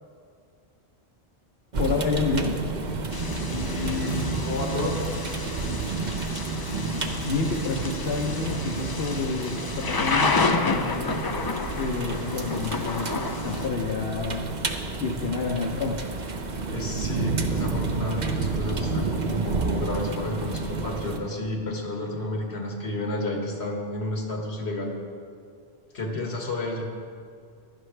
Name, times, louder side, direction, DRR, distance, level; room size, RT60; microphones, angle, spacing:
sound 1, 1.7-21.2, right 3 dB, 45° right, 0.9 m, -30 dB
voice 1, 1.8-2.6 7.1-11.3 11.7-14.5 15.0-16.0, left 4 dB, 70° left, 0 dB, 1.0 m, -29 dB
Thunder / Rain, 3.1-13.7, left 3 dB, 35° left, 0.3 m, -30 dB
voice 2, 3.5-5.0 16.7-24.9 25.9-26.8, left 2 dB, 85° left, 0 dB, 2.0 m, -31 dB
15.5 x 12.0 x 3.3 m, 2.3 s
omnidirectional pair, 1.1 m